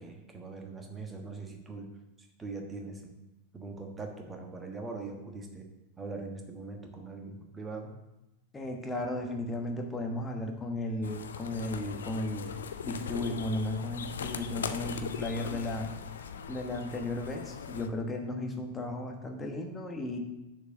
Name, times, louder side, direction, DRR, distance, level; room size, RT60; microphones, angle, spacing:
voice 1, 0.0-1.9 2.2-3.1 3.5-5.7 6.0-8.0, right 3 dB, 15° right, 3 dB, 1.2 m, -42 dB
voice 2, 8.5-15.9 16.5-20.2, left 1 dB, 15° left, 3 dB, 1.2 m, -35 dB
sound 1, 11.0-17.9, left 6 dB, 65° left, 0.5 m, -40 dB
6.8 x 4.7 x 6.5 m, 0.95 s
figure-of-eight pair, 90°, 0 cm